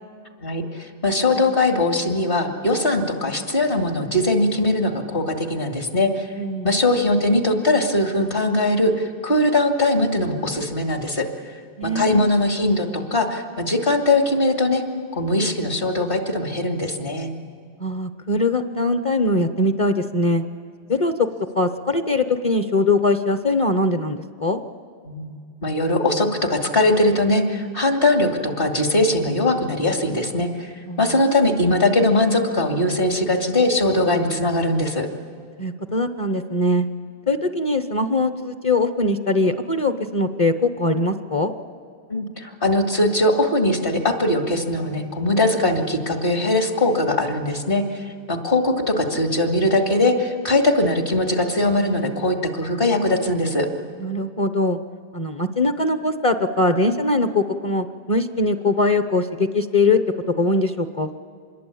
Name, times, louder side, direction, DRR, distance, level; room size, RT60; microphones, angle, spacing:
voice 1, 0.4-6.3 6.6-11.2 11.8-14.8 15.1-17.3 25.0-30.7 31.0-35.1 42.1-53.7, left 1 dB, 60° left, 3 dB, 2.7 m, -21 dB
voice 2, 6.4-6.7 11.8-12.3 17.8-20.4 20.9-21.3 21.5-24.6 30.9-31.0 35.6-36.9 37.3-41.5 54.0-54.8 55.1-60.0 60.4-61.1, left 2 dB, 35° left, 8 dB, 0.9 m, -21 dB
26.0 x 21.5 x 8.5 m, 2.1 s
omnidirectional pair, 1.1 m